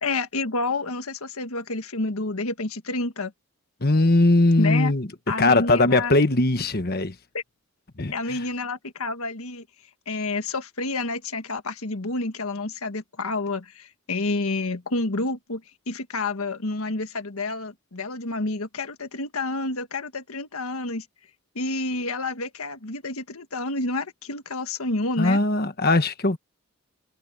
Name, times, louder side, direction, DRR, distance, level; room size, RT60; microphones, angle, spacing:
voice 1, 0.0-3.3 4.6-4.9 5.3-6.1 7.3-7.4 8.1-9.6 10.1-15.6 15.9-21.0 21.5-25.4, left 2 dB, 75° left, 1.6 m, -29 dB
voice 2, 3.8-5.1 5.4-7.1 8.0-8.5 25.2-26.4, left 2 dB, 45° left, 1.4 m, -20 dB
head